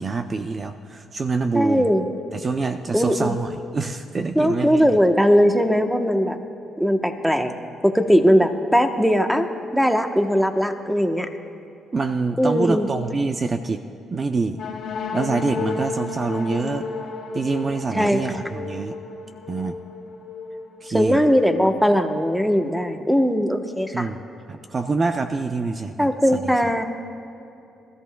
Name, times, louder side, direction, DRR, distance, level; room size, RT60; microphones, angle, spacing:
voice 1, 0.0-1.9 2.3-5.0 11.9-13.8 14.1-14.6 15.1-16.9 17.3-19.0 19.5-19.8 20.8-21.2 23.9-24.2 24.5-26.6, right 4 dB, 35° right, 7 dB, 0.5 m, -26 dB
voice 2, 1.5-2.0 2.9-3.3 4.3-6.4 6.8-7.5 7.8-9.5 9.7-11.3 12.4-12.9 17.9-18.4 20.9-24.1 26.0-26.8, equal, ahead, 6 dB, 0.9 m, -19 dB
sound 1, 14.6-22.3, left 4 dB, 70° left, 1.9 m, -33 dB
23.0 x 14.0 x 2.3 m, 2.7 s
cardioid pair, 90°, 0 cm